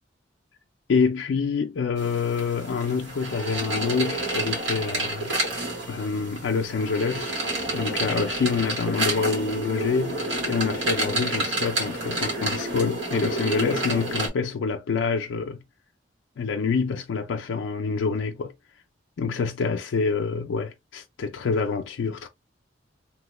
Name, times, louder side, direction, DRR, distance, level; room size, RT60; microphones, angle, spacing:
voice 1, 0.9-5.3 5.9-7.4 7.7-15.6 16.4-18.5 19.2-22.3, left 5 dB, 85° left, 0.4 m, -26 dB
sound 1, 2.0-14.3, right 2 dB, 85° right, 1.2 m, -29 dB
2.9 x 2.1 x 3.0 m
head